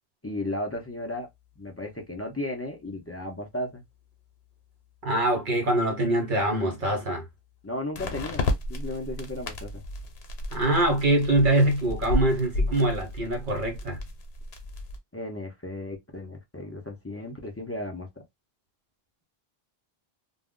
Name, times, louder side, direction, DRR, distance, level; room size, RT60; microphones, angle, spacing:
voice 1, 0.2-1.3 1.6-3.8 7.6-9.8 15.1-18.1, left 1 dB, 25° left, 0.3 m, -35 dB
sound 1, 1.2-1.3 7.9-15.0, left 2 dB, 85° left, 0.9 m, -32 dB
voice 2, 5.0-7.2 10.5-14.0, right 1 dB, 55° right, 0.8 m, -24 dB
2.3 x 2.0 x 3.5 m
omnidirectional pair, 1.0 m